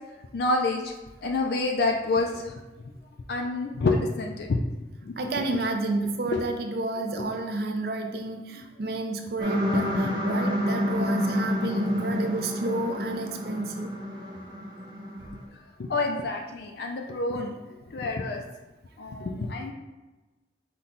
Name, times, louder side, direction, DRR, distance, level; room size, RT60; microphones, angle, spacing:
voice 1, 0.3-0.9 1.2-2.5 3.3-4.6 5.0-5.1 6.3-6.4 7.2-7.4 9.7-9.8 15.8-17.5 17.9-18.4 19.0-19.7, left 3 dB, 55° left, 2 dB, 0.4 m, -28 dB
voice 2, 5.2-13.9, right 2 dB, 55° right, 4 dB, 0.5 m, -30 dB
sound 1, 9.4-15.4, left 1 dB, 25° right, 0.7 m, -29 dB
5.6 x 2.2 x 3.8 m, 1.1 s
head